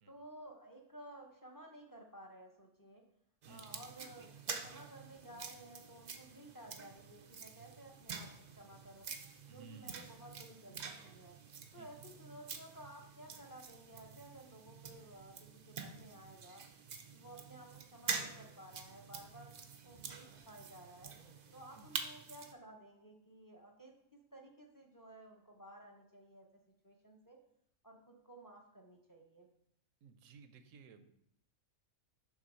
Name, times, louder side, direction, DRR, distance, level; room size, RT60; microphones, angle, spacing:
voice 1, 0.1-3.0 3.5-4.4 4.6-9.1 9.5-11.4 11.7-16.6 17.1-19.5 19.8-21.1 21.5-27.4 27.8-29.5, right 1 dB, 20° left, 2 dB, 0.5 m, -55 dB
sound 1, 3.4-22.5, right 5 dB, 55° right, 0.5 m, -47 dB
voice 2, 3.4-3.8 9.5-10.1 11.8-11.9 21.7-21.9 30.0-31.1, right 5 dB, 75° right, 9 dB, 1.0 m, -56 dB
6.2 x 3.5 x 5.3 m, 0.75 s
omnidirectional pair, 1.4 m